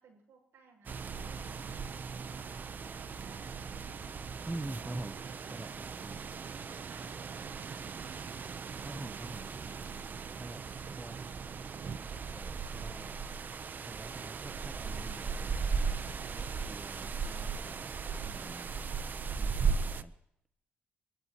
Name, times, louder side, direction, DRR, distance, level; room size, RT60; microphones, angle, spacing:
voice 1, 0.0-2.6 3.2-4.2 6.8-8.5, right 4 dB, 75° right, 2 dB, 6.9 m, -61 dB
sound 1, 0.9-20.0, right 5 dB, 50° right, 0.8 m, -37 dB
voice 2, 4.5-6.2 8.8-9.9 10.4-11.2 12.3-13.2 13.8-18.0 18.2-18.7 19.4-20.1, right 2 dB, 15° right, 10 dB, 0.9 m, -46 dB
25.5 x 14.5 x 3.1 m, 0.78 s
cardioid pair, 80°, 4 cm